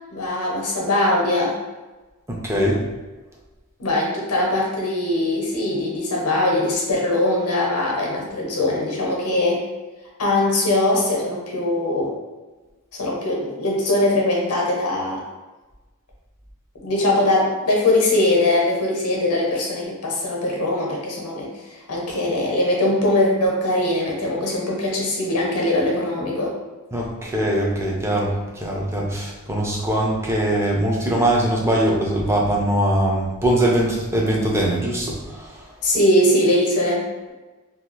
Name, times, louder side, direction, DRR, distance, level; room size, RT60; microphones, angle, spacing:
voice 1, 0.1-1.5 3.8-9.6 10.2-12.1 12.9-15.2 16.8-26.5 35.8-37.3, left 1 dB, 80° left, -2 dB, 0.7 m, -21 dB
voice 2, 2.3-2.8 26.9-35.6, right 1 dB, 10° right, -2 dB, 0.5 m, -21 dB
2.7 x 2.3 x 2.9 m, 1.2 s
head